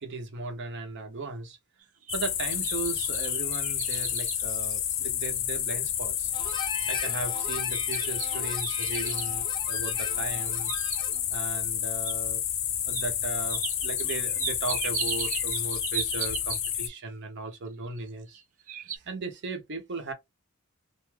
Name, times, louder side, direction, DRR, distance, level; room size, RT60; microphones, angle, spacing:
voice 1, 0.0-1.6 2.1-6.3 6.9-10.7 11.3-12.4 12.9-18.4 18.9-20.1, right 4 dB, 55° right, 0.8 m, -37 dB
sound 1, 1.8-5.4 5.9-6.0 6.5-6.9 7.7-9.3 10.3-11.3 12.0-12.1 12.9-13.1 13.5-16.9 18.0-18.4 18.7-19.0, right 9 dB, 35° right, 0.3 m, -37 dB
sound 2, 2.1-16.9, left 10 dB, 65° left, 0.5 m, -30 dB
Harmonica, 6.3-11.2, left 4 dB, 20° left, 0.5 m, -38 dB
2.5 x 2.3 x 3.1 m
head